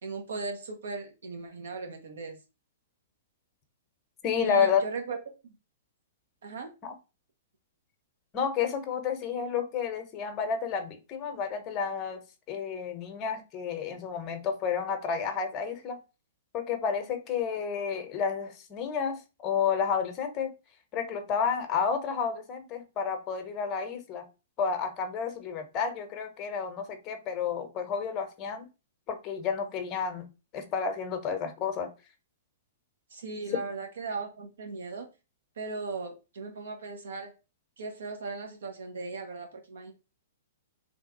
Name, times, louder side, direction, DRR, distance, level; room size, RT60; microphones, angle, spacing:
voice 1, 0.0-2.4 4.4-5.5 6.4-6.7 33.1-35.1 35.6-37.3 37.8-39.9, right 4 dB, 75° right, 4 dB, 1.0 m, -38 dB
voice 2, 4.2-4.8 6.8-6.9 8.3-12.2 12.5-16.0 16.5-20.5 20.9-24.3 24.6-28.6 29.1-30.3 30.5-31.9, left 6 dB, 30° left, 7 dB, 0.8 m, -30 dB
3.2 x 2.3 x 3.9 m, 0.29 s
hypercardioid pair, 130°, 0 cm